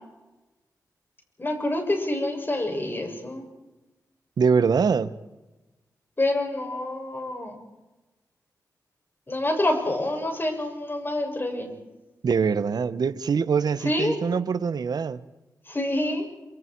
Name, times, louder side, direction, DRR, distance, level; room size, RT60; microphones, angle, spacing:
voice 1, 1.4-3.4 6.2-7.6 9.3-11.7 13.8-14.2 15.7-16.2, left 1 dB, 30° left, 7.2 m, -27 dB
voice 2, 4.4-5.2 12.2-15.2, right 6 dB, 70° right, 1.1 m, -23 dB
27.0 x 25.5 x 4.7 m
cardioid pair, 50°, 7 cm